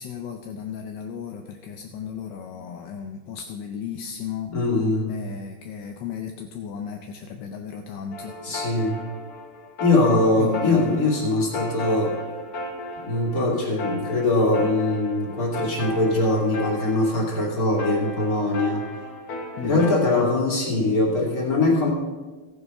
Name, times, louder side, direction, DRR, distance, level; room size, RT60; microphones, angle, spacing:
voice 1, 0.0-4.6 5.1-8.4 10.4-11.0 19.6-19.9, left 7 dB, 70° left, 5 dB, 1.2 m, -34 dB
voice 2, 4.5-5.1 8.4-9.0 9.8-12.1 13.0-18.8 19.6-21.9, left 2 dB, 40° left, -2 dB, 2.8 m, -22 dB
sound 1, 8.1-20.3, left 1 dB, 85° left, 2.5 m, -35 dB
15.5 x 6.9 x 5.3 m, 1.3 s
omnidirectional pair, 2.4 m